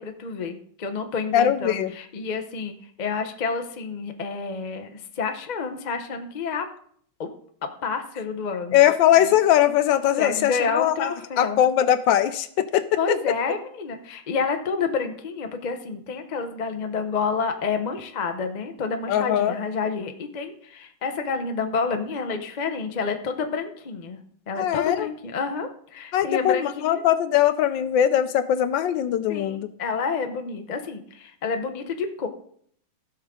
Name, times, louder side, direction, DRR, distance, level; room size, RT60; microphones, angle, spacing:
voice 1, 0.0-6.7 7.2-7.3 7.6-8.8 10.2-11.6 13.0-24.2 24.5-27.0 29.3-32.3, left 5 dB, 50° left, 6 dB, 0.5 m, -29 dB
voice 2, 1.3-1.9 8.7-11.1 11.4-12.9 19.1-19.5 24.6-25.1 26.1-29.7, left 11 dB, 75° left, 12 dB, 1.2 m, -21 dB
16.5 x 6.3 x 3.7 m, 0.63 s
omnidirectional pair, 2.2 m